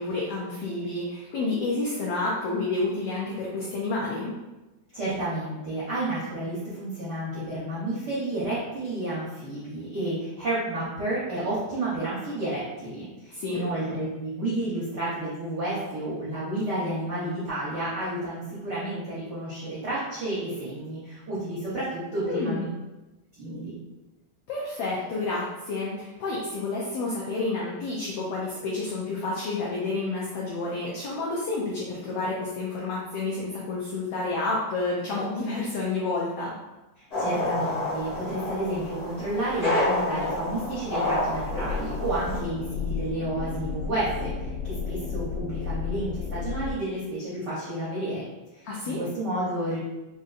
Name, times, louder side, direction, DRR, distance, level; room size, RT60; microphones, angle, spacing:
voice 1, 0.0-4.4 13.3-13.6 22.3-22.7 24.5-36.5 48.6-49.0, left 3 dB, 85° left, -4 dB, 1.3 m, -30 dB
voice 2, 4.9-22.6 23.3-23.7 37.0-48.2 48.5-49.8, right 1 dB, 75° right, -10 dB, 0.9 m, -31 dB
sound 1, 37.1-42.4, left 1 dB, 45° left, 0.7 m, -29 dB
sound 2, 38.0-46.7, left 5 dB, 65° left, 1.5 m, -35 dB
4.9 x 2.6 x 2.4 m, 1.1 s
omnidirectional pair, 3.4 m